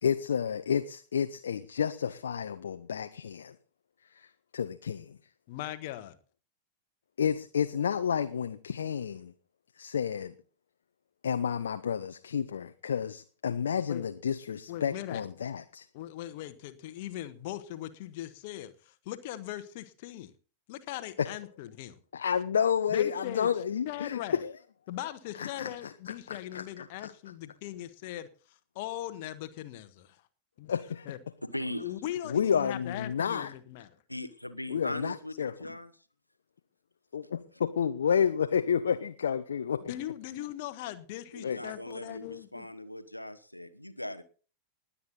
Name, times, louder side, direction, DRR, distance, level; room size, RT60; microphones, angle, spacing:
voice 1, 0.0-3.6 4.1-5.2 7.2-9.3 9.8-10.3 11.2-15.8 21.2-21.3 22.1-24.5 25.4-27.1 30.7-31.1 32.3-33.5 34.7-35.8 37.1-39.9 41.4-41.6, left 7 dB, 65° left, 0.9 m, -30 dB
voice 2, 5.5-6.2 13.9-14.1 14.7-15.3 15.9-20.3 20.7-22.0 22.9-23.5 23.8-24.4 24.9-30.2 30.6-30.7 31.0-31.2 31.8-33.9 39.8-42.7, left 13 dB, 50° left, 1.3 m, -40 dB
voice 3, 31.5-31.9 34.1-35.9 41.3-44.2, left 1 dB, 85° left, 1.1 m, -39 dB
20.5 x 8.6 x 4.0 m
figure-of-eight pair, 90°, 0 cm